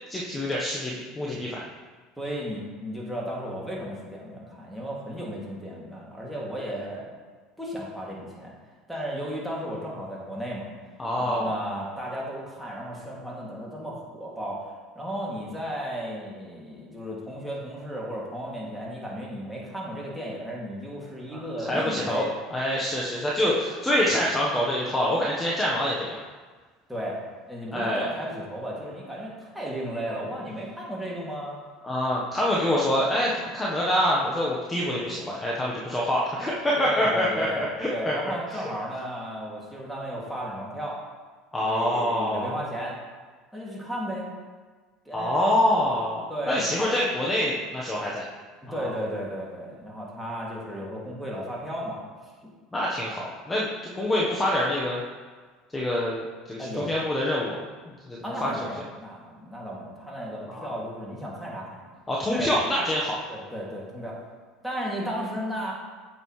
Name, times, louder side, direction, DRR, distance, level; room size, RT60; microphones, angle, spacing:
voice 1, 0.1-1.6 11.0-11.5 21.3-22.2 22.5-26.2 27.7-28.1 31.8-38.1 38.5-38.6 41.5-42.6 45.1-48.3 48.7-48.9 50.3-50.4 52.7-55.0 55.7-57.6 57.9-58.7 60.5-60.7 62.1-63.2, left 1 dB, 15° left, -4 dB, 1.2 m, -26 dB
voice 2, 2.2-7.1 7.6-8.5 8.9-10.7 11.2-22.3 26.9-27.2 27.5-31.6 36.8-41.0 41.6-43.0 43.5-44.3 45.0-45.6 46.3-47.0 48.6-52.1 56.6-56.9 58.2-61.9 62.3-62.5 63.3-64.2 64.6-65.7, equal, ahead, -5 dB, 2.5 m, -34 dB
8.8 x 6.6 x 3.2 m, 1.4 s
supercardioid pair, 95°, 0 cm